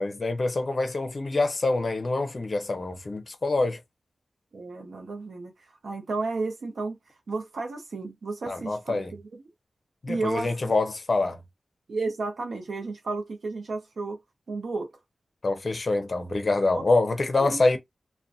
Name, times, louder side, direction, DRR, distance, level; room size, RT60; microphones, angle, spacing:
voice 1, 0.0-3.8 8.5-9.1 10.0-11.4 15.4-17.8, left 2 dB, 45° left, 0.5 m, -25 dB
voice 2, 4.5-5.5 5.8-7.0 7.3-9.2 10.1-10.7 11.9-14.2 14.5-14.9 16.7-16.9 17.4-17.6, right 3 dB, 75° right, 0.6 m, -32 dB
2.5 x 2.1 x 2.5 m
wide cardioid pair, 85°, 0 cm